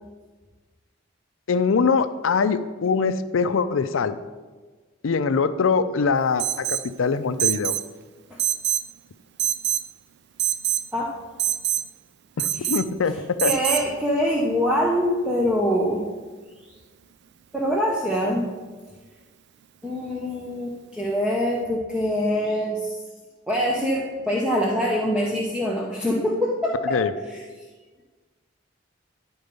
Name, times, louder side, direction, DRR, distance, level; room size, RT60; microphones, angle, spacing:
voice 1, 1.5-4.2 5.0-7.8 12.4-13.5 26.9-27.1, left 5 dB, 85° left, 12 dB, 0.5 m, -23 dB
Alarm, 6.4-6.9 7.4-7.9 8.4-8.9 9.4-9.9 10.4-10.9 11.4-11.8 12.4-12.8 13.4-13.8, right 12 dB, 60° right, 0.4 m, -24 dB
voice 2, 13.4-16.0 17.5-18.5 19.8-23.0 23.5-27.0 27.3-27.4, equal, 5° right, -4 dB, 0.8 m, -24 dB
11.0 x 4.4 x 5.2 m, 1.4 s
head